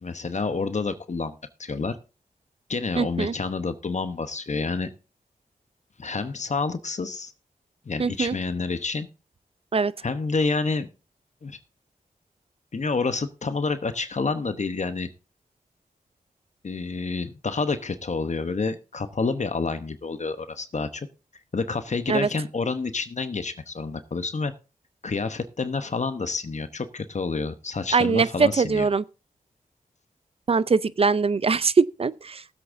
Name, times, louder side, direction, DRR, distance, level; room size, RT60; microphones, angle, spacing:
voice 1, 0.0-2.0 2.7-4.9 6.0-7.3 7.9-9.1 10.0-10.9 11.4-11.6 12.7-15.1 16.6-21.1 21.5-24.5 25.0-28.9, left 4 dB, 50° left, 1.0 m, -28 dB
voice 2, 3.0-3.3 8.0-8.4 9.7-9.9 22.1-22.3 27.9-29.0 30.5-32.5, right 5 dB, 40° right, 0.5 m, -22 dB
19.0 x 8.0 x 2.7 m
cardioid pair, 50°, 15 cm